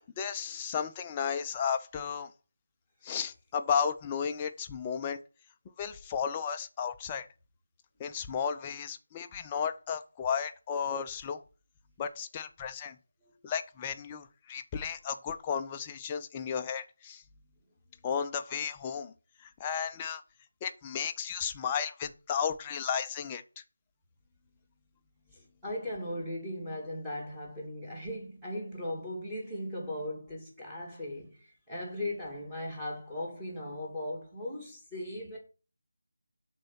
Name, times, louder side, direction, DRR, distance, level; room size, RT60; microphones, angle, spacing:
voice 1, 0.2-2.3 3.0-5.2 5.8-7.3 8.0-11.4 12.0-12.9 13.4-17.2 18.0-19.1 19.4-20.2 20.6-23.4, left 7 dB, 15° left, 0.6 m, -33 dB
voice 2, 25.3-35.4, left 1 dB, 5° right, 2.7 m, -38 dB
11.5 x 4.2 x 5.8 m
figure-of-eight pair, 160°, 0 cm